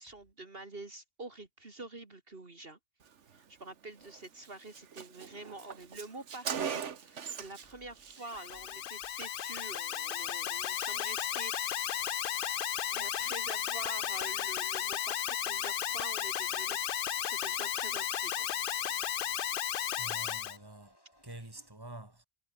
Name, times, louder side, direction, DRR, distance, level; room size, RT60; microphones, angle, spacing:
voice 1, 0.0-2.8 3.3-12.0 12.9-16.8 17.2-18.5, right 2 dB, 55° right, 2.7 m, -47 dB
Car, 4.0-4.2 4.5-4.6 4.7-7.7 8.0-8.2, right 7 dB, 85° right, 1.5 m, -39 dB
Alarm, 8.2-20.6, left 10 dB, 55° left, 0.7 m, -34 dB
sound 1, 10.0-21.7, equal, 20° left, 6.8 m, -66 dB
voice 2, 20.0-21.0 21.2-22.3, right 1 dB, 20° right, 3.1 m, -47 dB
omnidirectional pair, 1.2 m